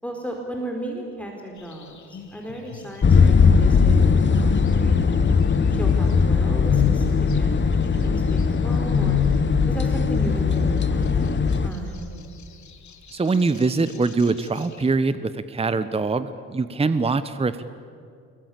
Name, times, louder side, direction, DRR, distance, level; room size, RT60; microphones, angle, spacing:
voice 1, 0.0-5.2 5.7-9.2 9.7-12.1, right 1 dB, 5° left, 1 dB, 4.5 m, -35 dB
sound 1, 1.6-3.1 4.0-5.8 6.1-9.6 9.9-10.0 10.5-14.9, left 11 dB, 45° left, 2.4 m, -31 dB
sound 2, 3.0-11.7, left 5 dB, 30° left, 1.5 m, -19 dB
voice 2, 13.1-17.6, right 3 dB, 15° right, 14 dB, 1.0 m, -23 dB
25.0 x 22.5 x 8.7 m, 2.4 s
figure-of-eight pair, 50°, 41 cm